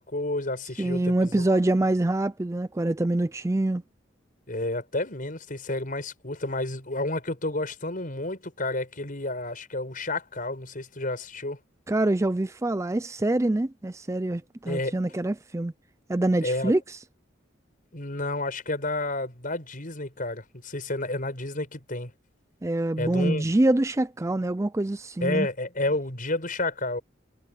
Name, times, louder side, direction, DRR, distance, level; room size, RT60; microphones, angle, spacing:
voice 1, 0.0-1.4 4.5-11.6 14.7-15.0 16.4-16.8 17.9-22.1 23.0-23.4 25.2-27.0, left 2 dB, 45° left, 6.1 m, -30 dB
voice 2, 0.8-3.8 11.9-15.7 16.1-17.0 22.6-25.5, right 1 dB, 15° right, 0.4 m, -25 dB
head